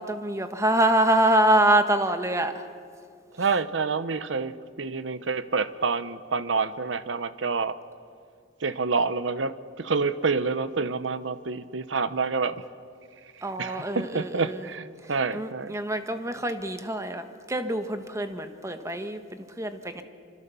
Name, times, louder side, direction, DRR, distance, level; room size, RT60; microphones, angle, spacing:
voice 1, 0.0-2.7 13.4-14.7 15.0-20.0, right 1 dB, 15° right, 8 dB, 1.4 m, -25 dB
voice 2, 3.4-7.8 8.6-12.6 13.6-15.7, right 4 dB, 90° right, 14 dB, 0.8 m, -28 dB
25.5 x 25.0 x 7.0 m, 2.2 s
head